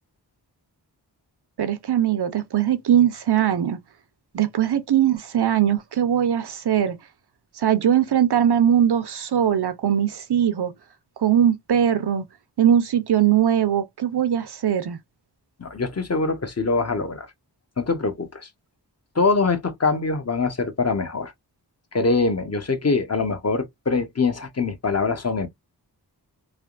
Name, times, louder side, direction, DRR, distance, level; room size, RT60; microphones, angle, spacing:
voice 1, 1.6-3.8 4.3-7.0 7.6-10.7 11.2-12.2 12.6-15.0, right 10 dB, 65° right, 0.7 m, -20 dB
voice 2, 15.6-17.3 17.8-18.5 19.1-21.3 21.9-25.5, left 4 dB, 35° left, 0.8 m, -23 dB
3.4 x 2.2 x 2.4 m
cardioid pair, 45°, 42 cm